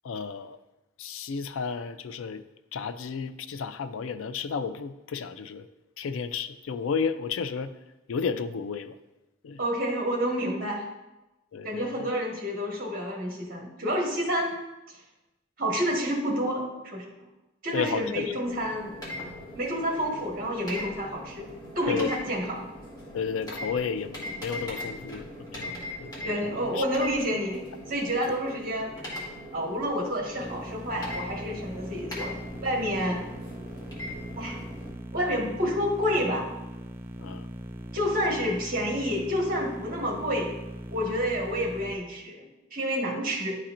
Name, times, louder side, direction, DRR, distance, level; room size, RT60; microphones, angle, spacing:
voice 1, 0.0-0.6 1.0-2.4 2.7-5.7 6.0-7.7 8.1-8.9 9.4-9.6 11.5-12.1 17.7-18.3 21.9-22.1 23.1-26.8 28.3-28.4 37.2-37.5, left 6 dB, 80° left, 11 dB, 0.4 m, -32 dB
voice 2, 9.6-10.9 11.6-14.5 14.9-15.0 15.6-17.0 17.6-18.9 19.5-21.5 21.7-22.7 26.2-28.9 29.5-33.3 34.4-34.6 35.1-36.5 37.9-40.6 40.9-42.4 42.7-43.6, equal, 45° right, -1 dB, 1.6 m, -29 dB
sound 1, 18.4-34.9, left 1 dB, 20° left, 1.6 m, -40 dB
sound 2, 30.4-41.9, equal, 10° right, 0.4 m, -40 dB
11.0 x 4.3 x 2.5 m, 0.99 s
head